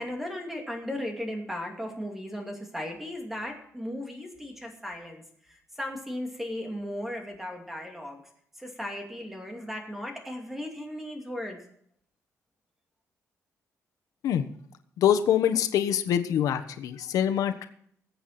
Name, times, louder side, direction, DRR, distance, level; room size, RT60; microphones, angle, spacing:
voice 1, 0.0-8.2 8.6-11.6, left 1 dB, 5° right, 2 dB, 2.5 m, -36 dB
voice 2, 15.0-17.7, left 9 dB, 90° left, 9 dB, 1.2 m, -25 dB
21.0 x 8.3 x 4.3 m, 0.65 s
cardioid pair, 175°, 6 cm